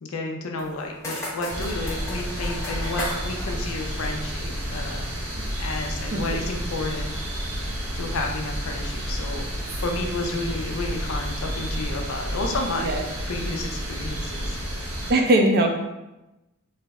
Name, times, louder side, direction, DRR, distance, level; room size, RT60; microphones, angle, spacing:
voice 1, 0.0-5.1 5.6-7.5 7.9-9.4 9.8-14.6, left 2 dB, 70° left, 2 dB, 0.5 m, -31 dB
sound 1, 0.6-4.8, left 1 dB, 15° left, 1.0 m, -36 dB
sound 2, 1.5-15.1, equal, 75° right, 0.7 m, -30 dB
voice 2, 15.1-15.7, right 1 dB, 45° right, 3 dB, 0.4 m, -20 dB
3.2 x 2.0 x 3.5 m, 0.97 s
head